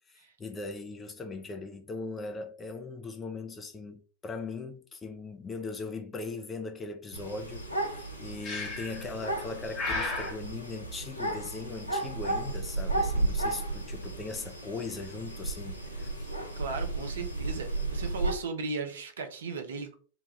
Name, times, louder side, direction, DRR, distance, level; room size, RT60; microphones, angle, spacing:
voice 1, 0.1-16.3, left 3 dB, 15° left, 0.5 m, -39 dB
sound 1, 7.1-18.3, right 2 dB, 85° left, 0.6 m, -34 dB
Breathing, 8.4-9.1 9.7-10.3, left 2 dB, 35° left, 0.9 m, -33 dB
voice 2, 16.6-19.9, right 4 dB, 65° right, 0.6 m, -36 dB
2.8 x 2.3 x 3.1 m
figure-of-eight pair, 90°, 0 cm